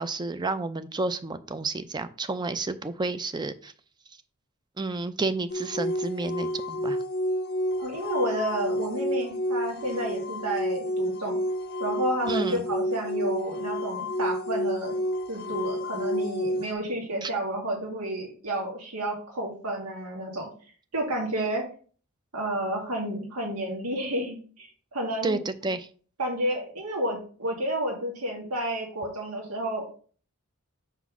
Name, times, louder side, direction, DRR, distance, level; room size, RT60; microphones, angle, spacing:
voice 1, 0.0-3.7 4.8-7.0 12.3-12.6 17.2-17.3 25.2-25.9, right 3 dB, 20° right, 12 dB, 0.4 m, -30 dB
sound 1, 5.5-16.7, equal, 45° left, 0.6 m, -30 dB
voice 2, 7.8-11.4 11.8-15.0 15.3-20.5 20.9-21.7 22.3-25.4 26.2-29.9, right 1 dB, 90° right, 0 dB, 1.9 m, -31 dB
5.6 x 4.0 x 6.0 m, 0.42 s
head